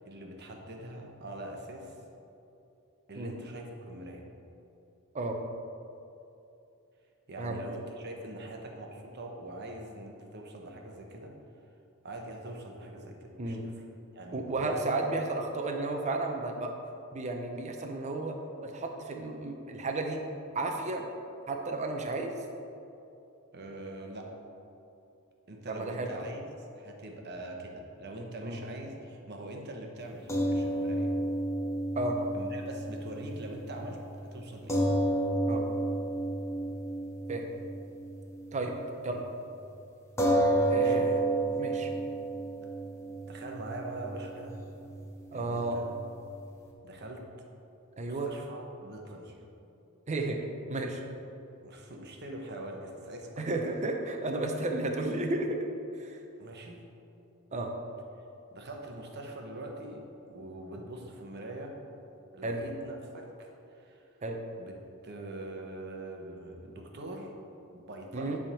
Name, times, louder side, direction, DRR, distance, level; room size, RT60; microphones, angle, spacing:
voice 1, 0.0-1.9 3.1-4.3 7.3-11.4 12.0-13.7 14.1-14.8 23.5-24.4 25.5-26.5 26.7-31.1 32.3-34.8 40.7-41.1 43.3-44.6 45.3-45.8 46.8-47.3 48.0-49.4 51.6-53.5 56.4-56.8 58.5-61.8 62.3-64.0 64.6-64.7 65.0-67.3 67.7-68.4, right 1 dB, 50° right, 1 dB, 0.9 m, -43 dB
voice 2, 14.3-16.7 17.1-18.3 18.6-20.2 20.5-21.0 21.5-22.3 25.7-26.1 28.4-28.6 32.0-32.2 35.5-35.6 37.3-37.5 38.5-38.7 39.0-39.3 40.7-41.2 41.6-41.9 45.3-45.8 48.0-48.3 50.1-50.4 50.7-51.0 53.4-55.6 56.0-56.2 57.5-57.7 62.4-62.6 64.2-64.4 68.1-68.4, right 2 dB, 30° right, 2 dB, 0.6 m, -32 dB
sound 1, 30.3-38.8 39.1-39.3 40.2-46.7, right 1 dB, 15° left, 0.8 m, -31 dB
10.0 x 3.5 x 5.5 m, 2.7 s
head